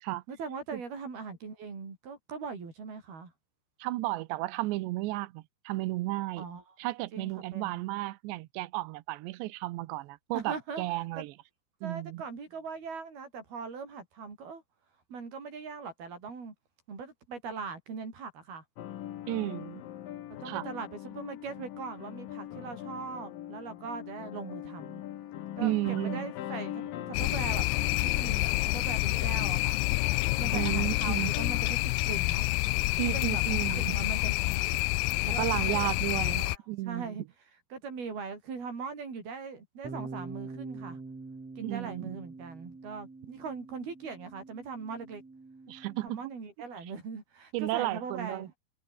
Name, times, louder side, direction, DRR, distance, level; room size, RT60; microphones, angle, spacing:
voice 1, 0.3-3.3 6.4-6.8 7.1-7.8 10.3-10.8 11.2-11.3 11.8-14.6 15.1-16.5 16.9-18.6 20.4-25.0 25.6-29.8 30.4-31.8 32.1-32.5 33.0-35.9 36.3-37.2 37.7-41.0 41.6-45.2 46.0-48.5, right 5 dB, 60° right, 7.9 m, -41 dB
voice 2, 3.8-6.5 6.8-11.3 11.8-12.2 19.3-19.8 20.5-20.7 25.6-26.3 30.5-31.3 33.0-34.0 35.4-37.1 41.6-42.2 45.7-46.2 47.5-48.5, right 18 dB, 80° right, 3.1 m, -33 dB
sound 1, 18.8-31.7, left 12 dB, 65° left, 2.7 m, -42 dB
sound 2, 27.1-36.6, left 21 dB, 80° left, 2.5 m, -28 dB
Bass guitar, 39.8-46.1, right 3 dB, 35° right, 7.6 m, -45 dB
omnidirectional pair, 5.0 m